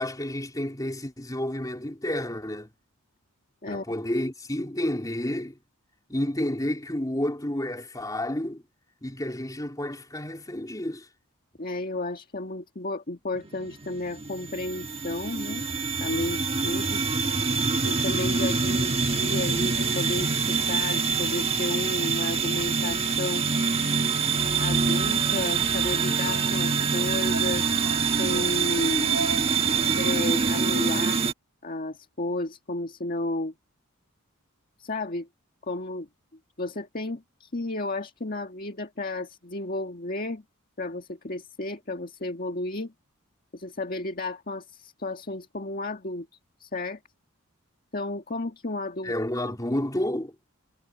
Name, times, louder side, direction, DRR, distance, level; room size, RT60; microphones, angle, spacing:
voice 1, 0.0-2.7 3.7-5.6 6.1-8.6 9.0-11.1 49.0-50.4, left 1 dB, 15° left, 3.6 m, -30 dB
voice 2, 11.6-15.6 16.0-17.0 17.8-23.5 24.6-27.7 28.0-29.2 30.0-31.2 31.6-33.5 34.8-35.3 35.6-36.1 36.6-40.4 40.8-42.9 43.5-46.3 46.6-47.0 47.9-49.1, left 2 dB, 40° left, 1.7 m, -32 dB
sound 1, 13.3-31.3, right 5 dB, 30° right, 1.5 m, -25 dB
sound 2, 25.6-30.7, right 3 dB, 85° right, 5.0 m, -40 dB
head